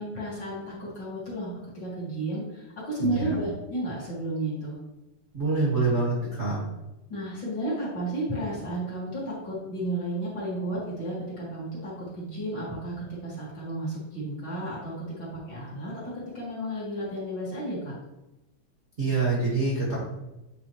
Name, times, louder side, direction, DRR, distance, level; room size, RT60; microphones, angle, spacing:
voice 1, 0.0-4.8 7.1-16.0 16.3-17.9, right 1 dB, 40° left, -8 dB, 2.0 m, -32 dB
voice 2, 5.3-6.6 19.0-20.0, right 3 dB, 50° right, -6 dB, 0.7 m, -25 dB
9.1 x 3.9 x 3.0 m, 0.98 s
omnidirectional pair, 3.8 m